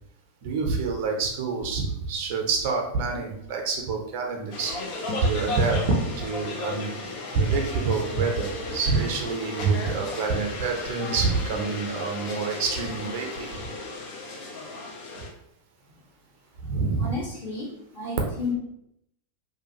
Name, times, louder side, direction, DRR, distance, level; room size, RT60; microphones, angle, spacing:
voice 1, 0.4-4.7 5.2-6.9 7.3-13.5 16.6-17.2, right 4 dB, 45° right, 1 dB, 0.6 m, -27 dB
sound 1, 4.5-15.3, left 2 dB, 45° left, 0.6 m, -34 dB
voice 2, 17.0-18.5, left 3 dB, 60° left, -6 dB, 1.3 m, -32 dB
2.7 x 2.4 x 2.9 m, 0.76 s
figure-of-eight pair, 90°, 0 cm